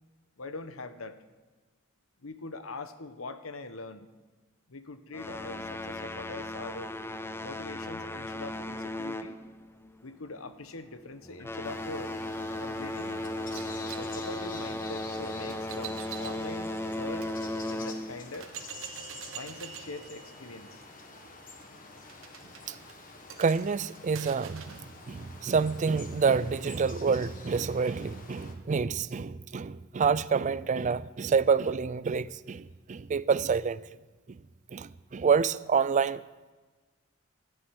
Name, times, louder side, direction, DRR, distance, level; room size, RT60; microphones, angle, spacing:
voice 1, 0.4-1.2 2.2-4.1 4.7-6.9 7.4-9.4 10.0-12.2 12.6-13.2 14.0-17.3 17.6-18.5 19.3-20.8, left 3 dB, 80° left, 1.1 m, -42 dB
sound 1, 5.1-10.0 10.3-10.6 11.2-18.3, left 1 dB, 10° left, 0.6 m, -36 dB
sound 2, 11.6-28.5, left 3 dB, 40° left, 1.8 m, -48 dB
sound 3, 13.5-17.3 17.9-18.0 18.3-24.9, right 7 dB, 70° right, 1.3 m, -46 dB
voice 2, 23.4-33.8 34.3-34.4 34.7-36.2, right 5 dB, 35° right, 0.4 m, -28 dB
13.5 x 8.6 x 9.7 m
head